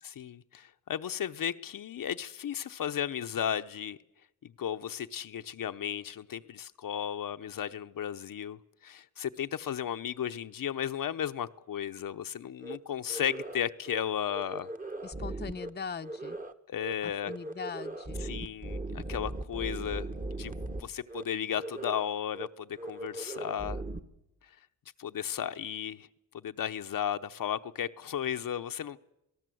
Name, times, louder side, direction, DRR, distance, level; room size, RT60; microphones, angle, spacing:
voice 1, 0.0-4.0 4.4-14.7 16.7-17.3 18.2-20.1 20.4-20.5 20.8-23.8 25.0-26.1 26.3-29.0, left 9 dB, 60° left, 0.8 m, -34 dB
sound 1, 12.6-12.8 13.1-13.6 13.8-14.0 14.3-15.7 16.0-16.5 16.8-16.9 17.2-20.8 21.1-21.2 21.6-22.1 22.3-22.5 22.8-24.0, right 2 dB, 20° right, 1.5 m, -38 dB
voice 2, 15.0-16.4 17.0-18.2, left 5 dB, 25° left, 0.8 m, -40 dB
26.5 x 18.0 x 7.8 m
cardioid pair, 85°, 37 cm